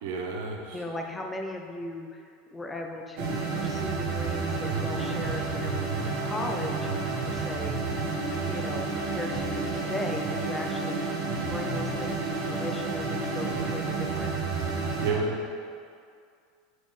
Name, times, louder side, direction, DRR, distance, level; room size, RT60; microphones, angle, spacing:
voice 1, 0.0-0.8 15.0-15.4, right 3 dB, 75° right, 0 dB, 0.9 m, -30 dB
voice 2, 0.7-6.9 7.2-7.8 8.5-11.0 11.4-14.3 15.1-15.2, left 2 dB, 10° left, 2 dB, 0.4 m, -37 dB
sound 1, 3.2-15.1, right 3 dB, 60° right, 1.2 m, -30 dB
7.7 x 4.0 x 3.2 m, 2.3 s
supercardioid pair, 150°, 0 cm